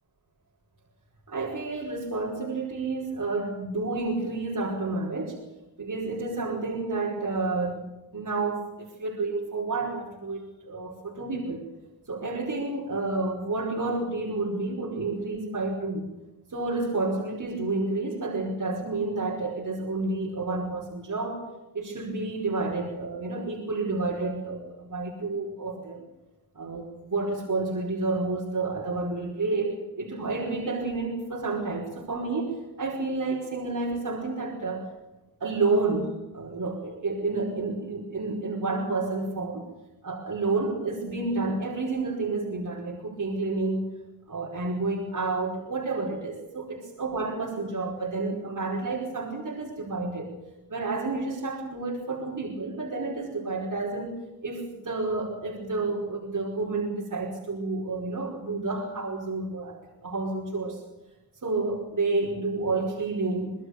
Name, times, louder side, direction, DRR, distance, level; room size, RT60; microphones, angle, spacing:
voice 1, 1.3-5.4 5.8-7.9 8.1-11.7 12.1-16.1 16.5-21.5 21.7-26.0 26.5-34.9 35.4-39.6 40.0-43.9 44.3-50.3 50.7-60.8 61.4-63.5, right 3 dB, 55° right, -2 dB, 5.2 m, -30 dB
25.0 x 20.5 x 6.8 m, 1.0 s
wide cardioid pair, 115°, 38 cm